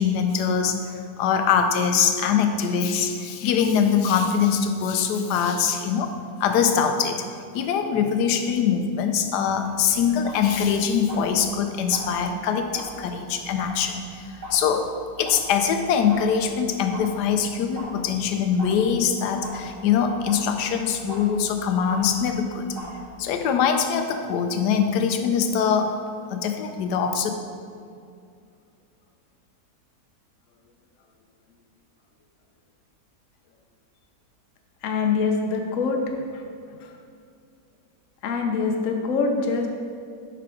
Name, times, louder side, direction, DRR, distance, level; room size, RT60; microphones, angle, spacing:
voice 1, 0.0-6.1 6.4-7.2 7.5-14.9 15.2-22.7 23.2-26.0 26.3-27.3, left 7 dB, 80° left, 6 dB, 1.2 m, -23 dB
sound 1, 9.6-23.4, equal, 70° right, 2.4 m, -41 dB
voice 2, 34.8-36.4 36.8-36.9 38.2-39.7, left 4 dB, 60° left, 3 dB, 0.9 m, -24 dB
6.7 x 5.8 x 3.7 m, 2.3 s
omnidirectional pair, 1.8 m